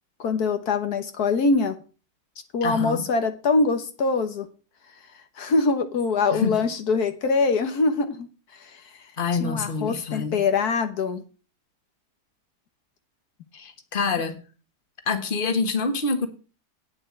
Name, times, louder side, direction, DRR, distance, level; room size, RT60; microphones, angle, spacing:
voice 1, 0.2-1.7 2.5-4.5 5.4-8.3 8.5-8.8 9.4-11.2, left 4 dB, 75° left, 1.7 m, -23 dB
voice 2, 2.6-3.0 6.3-6.6 9.2-10.4 13.5-14.4 15.1-16.3, left 4 dB, 35° left, 1.6 m, -26 dB
9.2 x 6.8 x 7.6 m
omnidirectional pair, 1.7 m